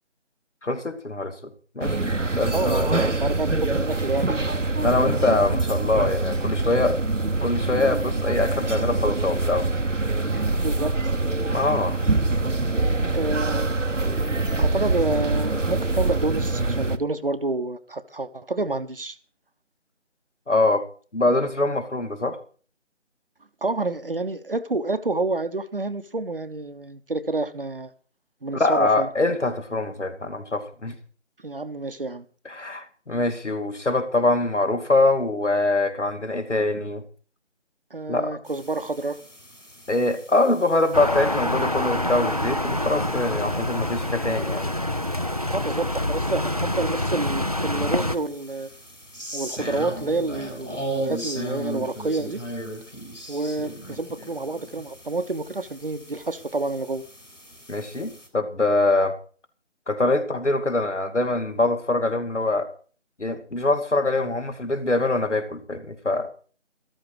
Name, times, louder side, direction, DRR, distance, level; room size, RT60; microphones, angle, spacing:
voice 1, 0.6-3.1 4.8-7.0 7.4-9.7 11.5-12.0 20.5-20.8 21.1-22.4 28.5-31.0 32.5-37.0 38.1-38.4 39.9-44.7 57.7-59.2 59.9-62.7 63.2-66.3, left 2 dB, 70° left, 2.6 m, -24 dB
sound 1, 1.8-17.0, right 2 dB, 85° right, 1.2 m, -24 dB
voice 2, 2.5-4.5 10.3-11.0 13.1-13.8 14.6-19.2 23.6-27.9 28.4-29.1 31.4-32.3 37.9-39.2 45.5-48.7 49.3-52.4 53.3-57.0, right 2 dB, 50° right, 1.0 m, -28 dB
sound 2, 38.5-58.3, right 1 dB, 90° left, 6.7 m, -38 dB
sound 3, 40.9-48.2, left 1 dB, 30° right, 0.5 m, -26 dB
13.5 x 13.5 x 4.8 m
figure-of-eight pair, 160°, 36 cm